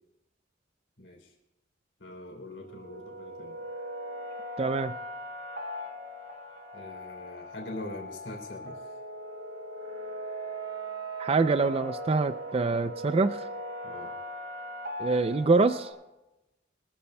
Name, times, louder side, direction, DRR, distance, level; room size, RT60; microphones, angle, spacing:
voice 1, 1.0-1.3 2.0-3.6 6.7-8.9 13.8-14.2, left 1 dB, 75° left, 2 dB, 3.4 m, -43 dB
sound 1, 2.6-15.9, right 1 dB, 75° right, 3.8 m, -39 dB
voice 2, 4.6-4.9 11.2-13.5 15.0-15.9, right 3 dB, 30° right, 11 dB, 0.4 m, -25 dB
24.0 x 14.0 x 2.2 m, 0.95 s
head